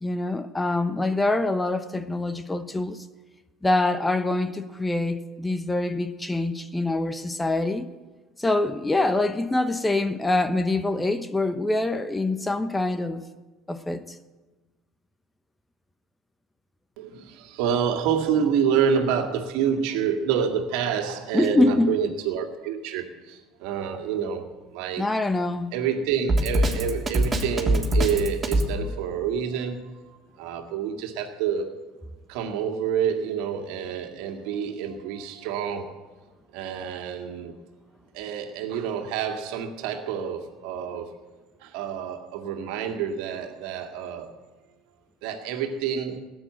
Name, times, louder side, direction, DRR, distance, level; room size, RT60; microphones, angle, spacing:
voice 1, 0.0-3.0 3.6-7.9 8.4-13.2 13.7-14.2 21.3-21.9 25.0-25.7, left 2 dB, 10° left, 1.0 m, -25 dB
voice 2, 17.0-25.1 25.7-30.0 30.3-31.7 32.3-36.1 36.5-37.6 38.1-41.1 41.6-44.3 45.2-46.2, right 7 dB, 60° right, 2.2 m, -28 dB
Drum kit, 26.3-28.7, right 1 dB, 20° right, 3.2 m, -22 dB
18.5 x 9.2 x 8.0 m
figure-of-eight pair, 65°, 0 cm